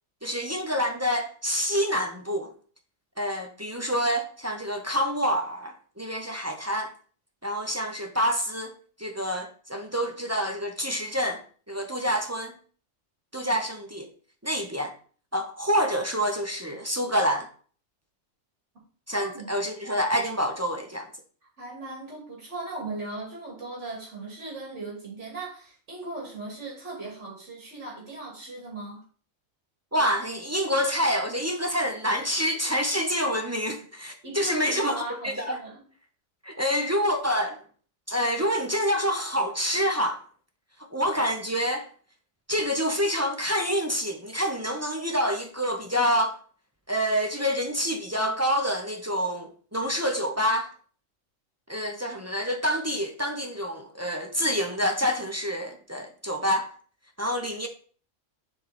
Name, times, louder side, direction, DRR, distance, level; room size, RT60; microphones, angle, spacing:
voice 1, 0.2-2.5 3.2-6.9 7.4-8.7 9.0-12.5 13.3-14.1 14.4-14.9 15.3-17.5 19.1-21.1 29.9-35.6 36.4-37.6 38.1-40.2 40.9-41.9 42.5-46.4 46.9-50.7 51.7-56.7 57.2-57.7, equal, 15° right, 0.6 m, -27 dB
voice 2, 19.2-19.5 21.6-29.0 34.2-35.8, right 2 dB, 65° right, 3.0 m, -38 dB
6.6 x 4.6 x 4.3 m
omnidirectional pair, 1.3 m